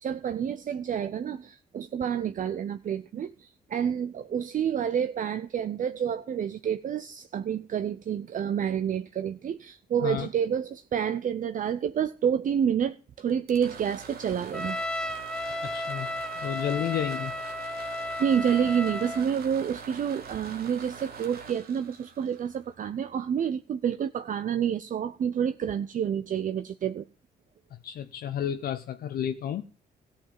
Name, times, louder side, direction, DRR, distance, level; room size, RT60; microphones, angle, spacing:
voice 1, 0.0-14.8 18.2-27.1, right 8 dB, 55° right, 0.6 m, -29 dB
sound 1, 13.3-23.1, right 5 dB, 70° right, 1.9 m, -44 dB
Trumpet, 14.5-19.3, left 1 dB, 5° left, 1.1 m, -34 dB
voice 2, 15.6-17.3 27.8-29.6, left 10 dB, 75° left, 0.7 m, -31 dB
14.0 x 5.8 x 8.8 m
cardioid pair, 70°, 16 cm